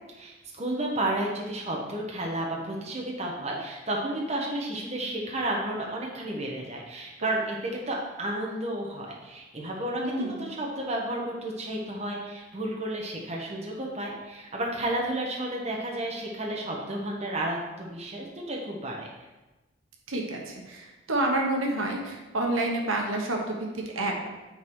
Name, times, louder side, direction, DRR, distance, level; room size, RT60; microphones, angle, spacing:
voice 1, 0.1-19.1, right 1 dB, 30° right, -2 dB, 1.2 m, -32 dB
voice 2, 10.0-10.3 20.1-24.3, right 2 dB, 80° right, 1 dB, 1.2 m, -29 dB
9.3 x 4.0 x 4.6 m, 1.1 s
head